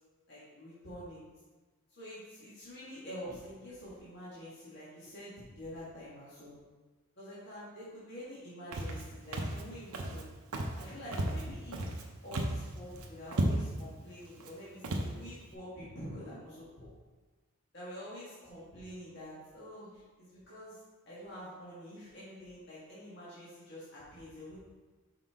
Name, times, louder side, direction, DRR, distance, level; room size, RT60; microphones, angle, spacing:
voice 1, 0.3-1.2 1.9-6.6 7.2-10.3 10.8-16.9 17.7-24.6, equal, 50° left, -10 dB, 1.8 m, -47 dB
Walk footsteps, 8.7-9.0 9.3-9.6 9.9-10.2 10.5-10.8 11.1-12.0 12.3-12.7 13.0-13.1 13.3-13.8 14.4-14.5 14.8-15.1, right 1 dB, 85° right, 0.8 m, -33 dB
5.7 x 5.3 x 3.7 m, 1.2 s
head